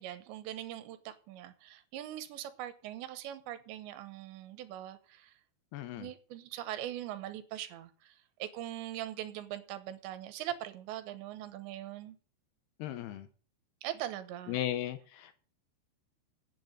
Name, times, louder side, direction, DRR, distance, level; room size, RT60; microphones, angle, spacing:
voice 1, 0.0-5.4 6.0-12.2 13.8-14.6, right 12 dB, 85° right, 3.3 m, -41 dB
voice 2, 5.7-6.1 12.8-13.3 14.5-15.3, left 12 dB, 75° left, 2.7 m, -36 dB
9.4 x 7.6 x 8.0 m
omnidirectional pair, 5.1 m